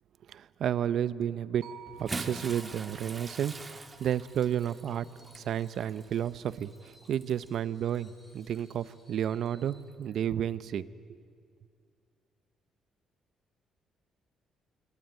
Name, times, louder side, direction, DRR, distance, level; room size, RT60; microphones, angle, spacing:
voice 1, 0.3-1.7 2.0-5.1 5.3-10.8 11.1-11.2, right 9 dB, 60° right, 16 dB, 0.7 m, -32 dB
sound 1, 1.6-5.8, right 8 dB, 80° right, 1.8 m, -54 dB
Bathtub (filling or washing) / Splash splatter, 1.9-7.5 8.4-8.6 10.1-10.2, right 3 dB, 20° right, 1.6 m, -43 dB
Screech, 3.8-9.9, left 1 dB, 5° left, 7.3 m, -64 dB
25.5 x 24.0 x 9.2 m, 2.3 s
cardioid pair, 130°, 0 cm